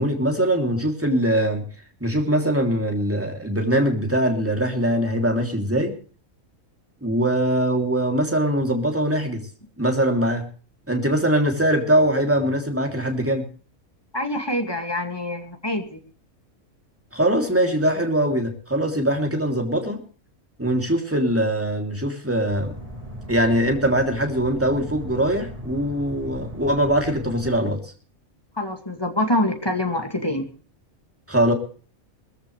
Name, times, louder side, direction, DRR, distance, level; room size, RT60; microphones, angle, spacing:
voice 1, 0.0-1.6 2.0-6.0 7.0-9.5 9.8-10.5 10.9-13.5 17.1-20.0 20.6-22.7 23.3-27.8 31.3-31.5, right 1 dB, 10° right, 3 dB, 3.1 m, -22 dB
voice 2, 14.1-16.0 28.6-30.5, left 1 dB, 15° left, 5 dB, 2.3 m, -25 dB
sound 1, 22.5-27.6, equal, 25° right, 3.6 m, -37 dB
21.0 x 14.5 x 3.3 m, 0.40 s
omnidirectional pair, 1.4 m